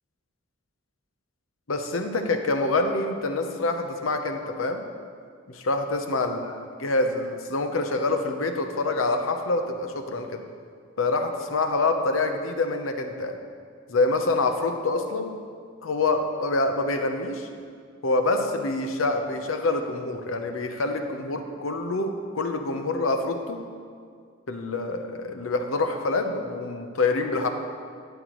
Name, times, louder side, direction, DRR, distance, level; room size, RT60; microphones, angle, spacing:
voice 1, 1.7-4.8 5.5-6.4 6.8-10.4 11.0-13.3 13.9-15.3 15.8-17.5 18.0-23.6 24.5-27.5, left 2 dB, 90° left, 5 dB, 0.8 m, -26 dB
11.5 x 10.0 x 3.1 m, 2.1 s
head